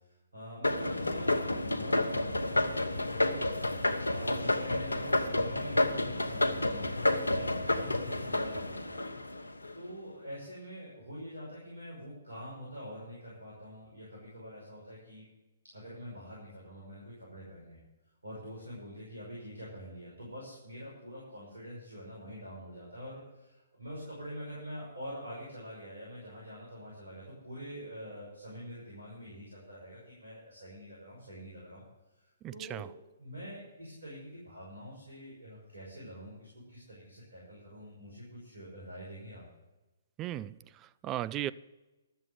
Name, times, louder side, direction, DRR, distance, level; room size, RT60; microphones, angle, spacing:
voice 1, 0.3-3.5 4.0-9.4 9.7-15.2 15.7-17.8 18.2-31.8 32.2-39.4, equal, 85° right, 5.5 m, -45 dB
sound 1, 0.6-9.7, left 1 dB, 90° left, 1.0 m, -30 dB
voice 2, 32.4-32.9 40.2-41.5, right 13 dB, 25° right, 0.4 m, -37 dB
12.5 x 7.7 x 7.5 m
figure-of-eight pair, 130°, 0 cm